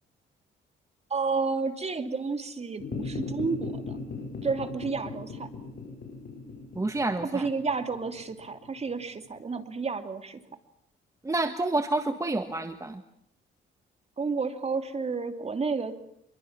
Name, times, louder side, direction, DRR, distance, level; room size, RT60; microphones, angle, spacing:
voice 1, 1.1-4.0 4.4-5.5 7.3-10.4 14.2-15.9, right 4 dB, 30° right, 7 dB, 2.9 m, -31 dB
sound 1, 2.8-9.4, left 4 dB, 55° left, 7.0 m, -38 dB
voice 2, 6.8-7.5 11.2-13.0, right 2 dB, 15° right, 8 dB, 1.6 m, -28 dB
26.5 x 23.0 x 7.4 m, 0.71 s
cardioid pair, 90°, 20 cm